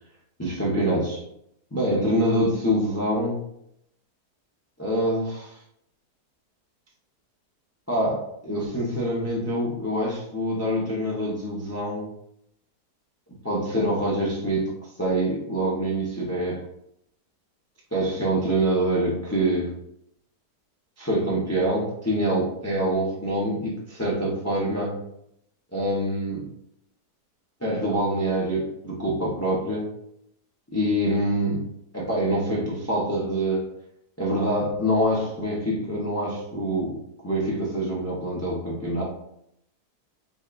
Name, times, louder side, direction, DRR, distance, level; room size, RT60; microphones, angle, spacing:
voice 1, 0.4-1.2 1.7-3.4 4.8-5.5 7.9-12.1 13.4-14.7 15.0-16.6 17.9-19.8 21.0-25.0 25.7-26.5 27.6-29.9 30.7-31.7 31.9-33.7 34.2-39.0, right 1 dB, 20° left, -5 dB, 0.4 m, -25 dB
5.2 x 2.3 x 2.4 m, 0.75 s
omnidirectional pair, 1.7 m